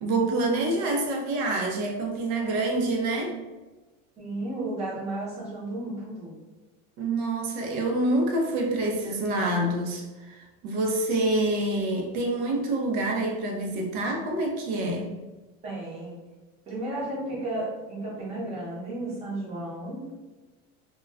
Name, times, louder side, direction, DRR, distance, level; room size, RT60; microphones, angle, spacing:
voice 1, 0.0-3.4 7.0-15.1, right 2 dB, 85° right, 1 dB, 0.6 m, -27 dB
voice 2, 4.2-6.4 15.6-16.2 16.7-20.1, right 1 dB, 20° right, -6 dB, 0.7 m, -33 dB
2.3 x 2.2 x 3.3 m, 1.2 s
cardioid pair, 175°, 31 cm